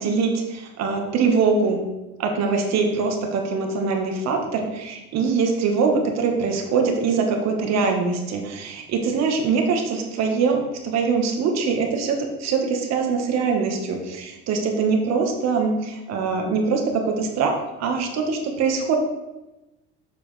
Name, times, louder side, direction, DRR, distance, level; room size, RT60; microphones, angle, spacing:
voice 1, 0.0-1.8 2.2-17.5 17.8-19.0, right 5 dB, 60° right, 3 dB, 1.4 m, -23 dB
7.3 x 6.7 x 3.3 m, 1.0 s
supercardioid pair, 90°, 30 cm